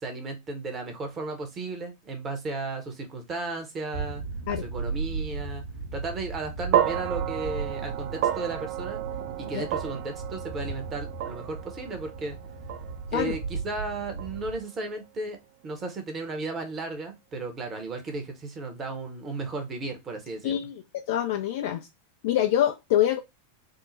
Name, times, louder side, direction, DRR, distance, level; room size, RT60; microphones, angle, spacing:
voice 1, 0.0-4.2 4.5-5.7 5.9-9.0 9.4-12.4 13.1-15.4 15.6-20.6, right 3 dB, 25° right, 1.0 m, -35 dB
sound 1, 3.9-14.6, right 4 dB, 80° right, 0.9 m, -36 dB
sound 2, 6.7-15.0, right 11 dB, 45° right, 0.3 m, -32 dB
voice 2, 20.4-20.7 21.1-21.9 22.2-23.2, left 11 dB, 50° left, 0.3 m, -25 dB
3.7 x 2.1 x 4.0 m
figure-of-eight pair, 90°, 0 cm